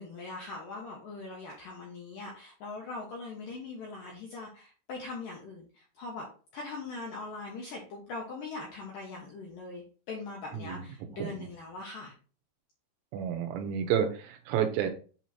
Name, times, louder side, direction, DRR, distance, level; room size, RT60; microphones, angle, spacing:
voice 1, 0.0-6.2 6.5-12.1, left 3 dB, 75° left, -2 dB, 2.1 m, -41 dB
voice 2, 10.5-10.9 11.2-11.5 13.1-14.9, right 8 dB, 80° right, 5 dB, 3.1 m, -30 dB
8.1 x 3.0 x 4.2 m, 0.39 s
omnidirectional pair, 5.4 m